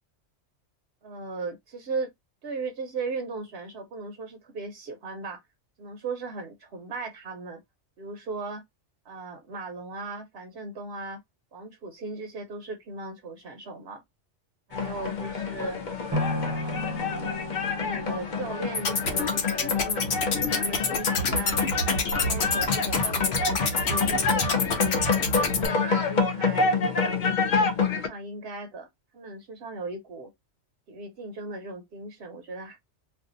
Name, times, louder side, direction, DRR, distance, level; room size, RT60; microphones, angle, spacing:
voice 1, 1.0-2.1 2.4-5.4 5.8-7.6 8.0-8.6 9.0-11.2 11.5-14.0 14.7-15.8 16.4-17.3 17.7-20.0 20.4-21.6 22.1-25.0 25.3-27.7 28.0-28.9 29.1-30.3 30.9-32.8, right 3 dB, 65° right, 0.9 m, -37 dB
sound 1, 14.7-28.1, left 4 dB, 50° left, 0.7 m, -28 dB
sound 2, 16.1-24.2 24.7-24.8, left 1 dB, 30° right, 0.8 m, -37 dB
sound 3, 18.7-25.7, left 3 dB, 90° left, 1.1 m, -27 dB
2.5 x 2.5 x 3.6 m
omnidirectional pair, 1.2 m